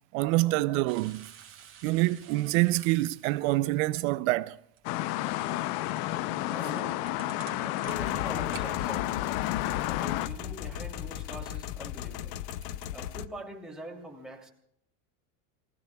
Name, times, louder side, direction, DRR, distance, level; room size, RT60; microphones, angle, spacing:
voice 1, 0.1-1.3 1.8-4.6, right 19 dB, 60° right, 0.6 m, -26 dB
sound 1, 0.9-3.7 4.7-8.7 9.0-9.1, right 8 dB, 25° right, 2.6 m, -50 dB
sound 2, 4.8-10.3, left 16 dB, 50° left, 0.7 m, -31 dB
voice 2, 6.5-7.0 7.6-9.3 9.8-12.4 12.9-14.5, right 1 dB, ahead, 2.8 m, -43 dB
sound 3, 7.9-13.3, left 11 dB, 85° left, 0.8 m, -37 dB
29.0 x 19.0 x 2.3 m
supercardioid pair, 135°, 46 cm